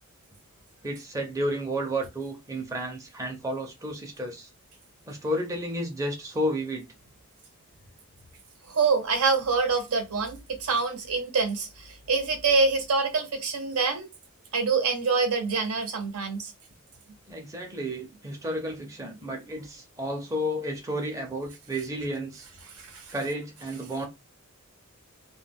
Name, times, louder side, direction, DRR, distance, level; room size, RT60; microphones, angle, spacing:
voice 1, 0.8-4.5 5.1-6.8 17.3-22.5 23.1-24.1, equal, 15° right, 0.5 m, -32 dB
voice 2, 8.7-14.1 14.5-16.5 22.8-23.0, right 4 dB, 90° right, 0.8 m, -26 dB
2.3 x 2.2 x 3.4 m
head